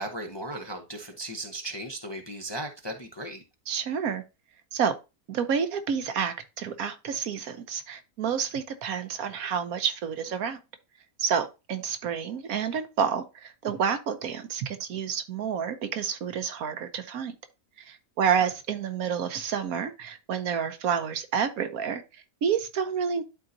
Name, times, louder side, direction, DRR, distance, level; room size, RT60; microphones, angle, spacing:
voice 1, 0.0-3.4 18.2-18.5, right 1 dB, 25° left, 0.6 m, -36 dB
voice 2, 3.7-4.2 4.7-4.9 5.3-10.6 11.2-17.3 17.8-23.2, right 7 dB, 70° right, 1.2 m, -29 dB
11.5 x 3.9 x 2.6 m
omnidirectional pair, 1.6 m